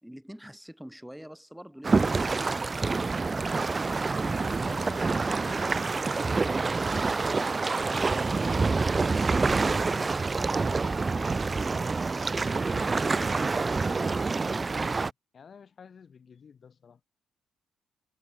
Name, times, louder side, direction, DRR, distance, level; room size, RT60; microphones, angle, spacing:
voice 1, 0.0-3.1, equal, ahead, 3.6 m, -46 dB
sound 1, 1.8-15.1, right 4 dB, 30° right, 0.4 m, -27 dB
voice 2, 4.3-6.9 7.2-8.7 9.4-11.6 12.1-17.0, left 6 dB, 45° left, 3.3 m, -50 dB
cardioid pair, 90°, 0 cm